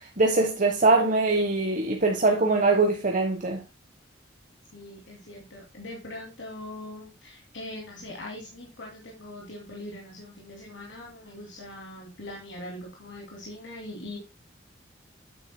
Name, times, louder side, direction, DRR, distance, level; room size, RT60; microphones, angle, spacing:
voice 1, 0.2-3.6, right 3 dB, 45° right, 1.3 m, -22 dB
voice 2, 4.7-14.2, left 1 dB, 90° left, 2.8 m, -41 dB
8.9 x 8.8 x 2.2 m
head